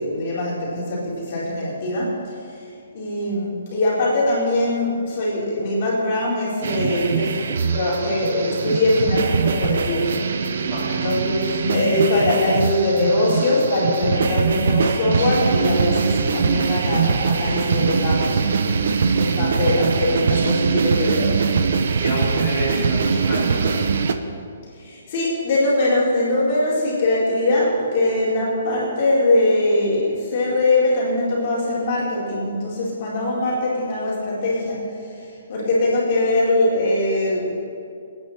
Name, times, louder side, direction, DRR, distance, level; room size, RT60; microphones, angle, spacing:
voice 1, 0.0-2.6 2.9-7.3 7.7-18.8 19.2-21.5 24.7-37.5, left 1 dB, 35° left, -6 dB, 4.6 m, -22 dB
sound 1, 6.6-24.1, right 5 dB, 60° right, 1.0 m, -22 dB
voice 2, 10.6-11.0 21.9-24.0, equal, 10° right, -11 dB, 4.2 m, -28 dB
27.5 x 9.7 x 4.4 m, 2.4 s
hypercardioid pair, 170°, 0 cm